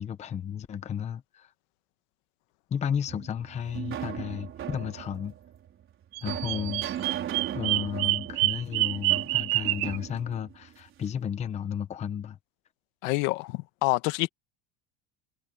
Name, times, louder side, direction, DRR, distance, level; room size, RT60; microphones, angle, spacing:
voice 1, 0.0-1.5 2.7-5.3 6.2-7.1 7.5-12.4, left 8 dB, 15° left, 0.8 m, -33 dB
sound 1, 3.1-11.2, right 10 dB, 30° right, 4.4 m, -38 dB
Bird vocalization bird call bird song, 6.1-10.0, right 24 dB, 90° right, 0.8 m, -27 dB
voice 2, 13.0-14.3, left 22 dB, 75° left, 1.5 m, -27 dB
cardioid pair, 175°, 40 cm